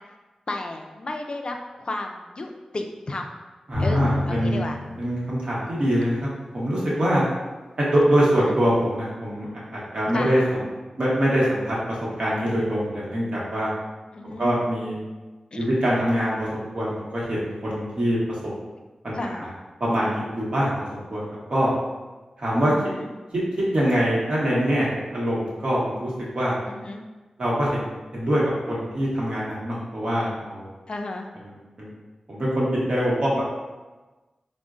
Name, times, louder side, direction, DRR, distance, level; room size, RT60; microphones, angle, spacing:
voice 1, 0.5-3.3 3.8-4.8 8.2-8.6 10.1-10.5 14.1-14.5 15.5-15.7 19.1-19.5 22.6-23.1 26.7-27.0 30.9-31.3, left 2 dB, 50° left, 3 dB, 0.3 m, -33 dB
voice 2, 3.7-4.6 5.0-6.2 6.5-7.2 7.8-9.5 9.9-10.4 11.0-11.8 12.2-13.7 14.2-15.0 15.6-18.2 19.0-19.5 19.8-21.2 21.5-21.7 22.4-22.7 23.7-26.6 27.4-27.8 28.1-28.4 28.7-30.7 31.8-31.9 32.3-33.4, equal, 55° right, -6 dB, 1.0 m, -24 dB
Drum, 3.7-6.1, left 2 dB, 90° right, 0.9 m, -29 dB
3.7 x 2.1 x 2.4 m, 1.2 s
wide cardioid pair, 70°, 2 cm